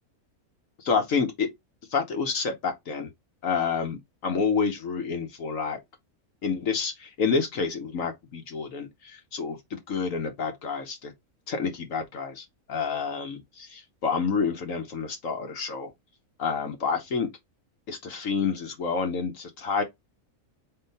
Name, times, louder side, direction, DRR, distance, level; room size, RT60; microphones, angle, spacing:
voice 1, 0.8-1.5 1.9-3.1 3.4-5.8 6.4-11.1 11.5-15.9 16.4-17.3 17.9-19.8, left 5 dB, 65° left, 1.3 m, -29 dB
3.8 x 3.2 x 4.0 m
omnidirectional pair, 1.5 m